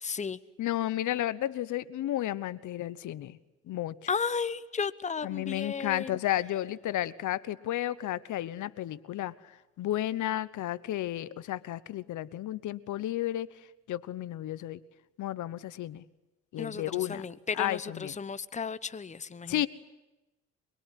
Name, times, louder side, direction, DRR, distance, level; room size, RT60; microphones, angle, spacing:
voice 1, 0.0-0.4 4.1-6.1 16.6-19.6, left 5 dB, 25° left, 15 dB, 0.9 m, -34 dB
voice 2, 0.6-3.4 3.7-4.0 5.2-9.3 9.8-13.5 13.9-14.8 15.2-16.0 16.5-17.2 17.6-18.1 19.5-19.7, left 13 dB, 75° left, 17 dB, 1.1 m, -32 dB
24.5 x 23.0 x 10.0 m, 1.0 s
cardioid pair, 90°, 30 cm